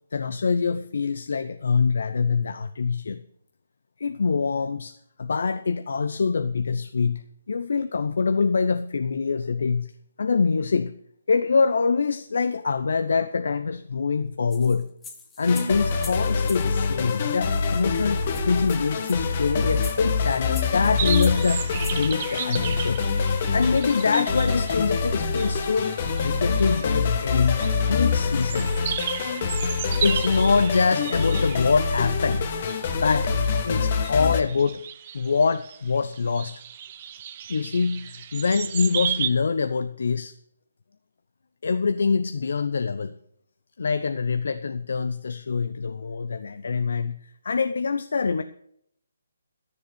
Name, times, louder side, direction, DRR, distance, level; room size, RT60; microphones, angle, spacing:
voice 1, 0.1-3.2 4.0-7.2 7.5-9.9 10.2-10.9 11.3-14.9 15.4-23.0 23.5-27.6 27.9-28.7 30.0-34.8 35.1-36.6 37.5-40.3 41.6-43.1 43.8-47.2 47.4-48.4, left 5 dB, 70° left, 10 dB, 0.7 m, -24 dB
sound 1, 14.5-16.7 17.6-17.7 18.0-18.1 18.3-22.0, left 4 dB, 10° left, 1.3 m, -43 dB
sound 2, 15.4-34.4, left 5 dB, 40° left, 1.5 m, -25 dB
sound 3, 21.0-39.3, right 10 dB, 35° right, 0.8 m, -35 dB
13.0 x 7.3 x 7.8 m, 0.70 s
hypercardioid pair, 155°, 0 cm